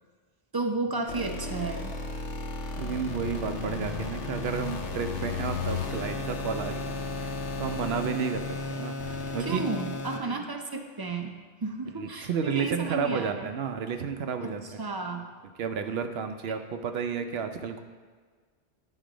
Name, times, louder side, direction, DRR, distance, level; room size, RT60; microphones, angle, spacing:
voice 1, 0.5-1.9 9.4-11.3 11.6-13.5 14.4-15.3, right 3 dB, 30° right, 4 dB, 0.4 m, -33 dB
sound 1, 1.1-10.2, left 3 dB, 80° left, 1.2 m, -34 dB
voice 2, 2.8-6.9 7.2-8.4 8.7-9.7 12.0-14.6 15.6-17.8, right 6 dB, 65° right, 7 dB, 0.8 m, -32 dB
11.0 x 4.1 x 5.0 m, 1.5 s
omnidirectional pair, 1.2 m